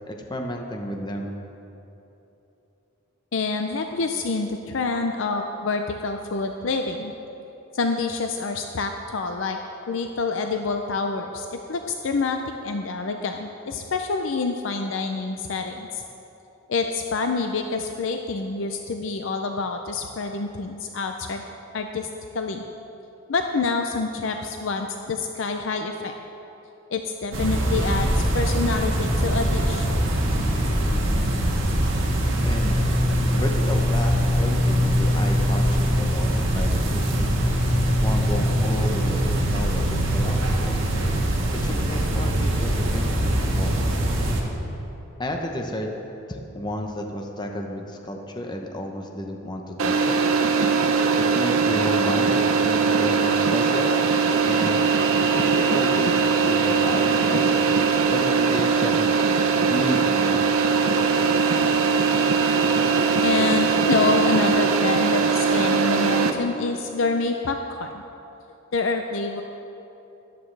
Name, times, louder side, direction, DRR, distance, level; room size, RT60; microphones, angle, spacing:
voice 1, 0.0-1.3 32.4-32.8 33.3-37.3 38.0-40.8 41.5-43.8 45.2-45.9 46.3-50.2 51.2-53.9 54.5-54.8 55.3-56.1 56.4-57.6 58.1-59.2 59.7-60.6, equal, 20° left, 2 dB, 0.9 m, -31 dB
voice 2, 3.3-7.1 7.7-9.6 9.9-16.0 16.7-21.4 21.7-22.1 22.3-22.6 23.3-26.1 26.9-29.9 63.2-68.0 68.7-69.4, left 3 dB, 65° left, 5 dB, 0.5 m, -27 dB
sound 1, 27.3-44.4, equal, 65° right, 1.5 m, -22 dB
sound 2, 49.8-66.3, right 5 dB, 85° right, 0.7 m, -21 dB
13.5 x 11.0 x 3.3 m, 3.0 s
head